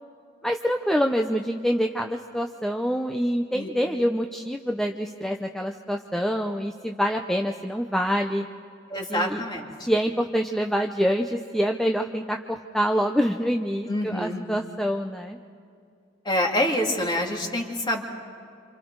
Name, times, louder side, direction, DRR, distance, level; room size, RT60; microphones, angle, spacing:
voice 1, 0.4-8.5 9.1-9.4 9.9-15.4, equal, ahead, 3 dB, 0.7 m, -26 dB
voice 2, 8.9-9.7 13.9-14.4 16.2-18.0, left 1 dB, 25° left, 1 dB, 2.6 m, -26 dB
28.5 x 27.0 x 4.7 m, 2.4 s
head